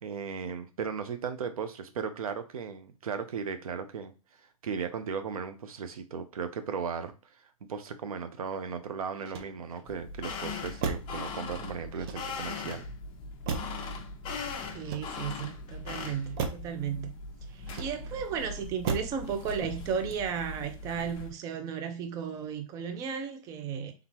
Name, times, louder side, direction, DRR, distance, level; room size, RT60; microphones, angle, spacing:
voice 1, 0.0-4.1 4.6-7.1 7.7-12.9, right 6 dB, 80° right, 0.8 m, -36 dB
Motor vehicle (road), 9.1-9.9 10.8-11.2 11.9-12.6 13.5-13.9 14.7-15.5 16.4-16.7 17.6-18.2 18.8-19.2 19.6-20.0, right 5 dB, 45° right, 0.7 m, -36 dB
sound 1, 9.9-21.3, left 3 dB, 25° left, 0.7 m, -40 dB
voice 2, 14.7-17.1 17.5-23.9, right 7 dB, 20° right, 0.4 m, -34 dB
3.8 x 3.5 x 2.9 m
hypercardioid pair, 145°, 18 cm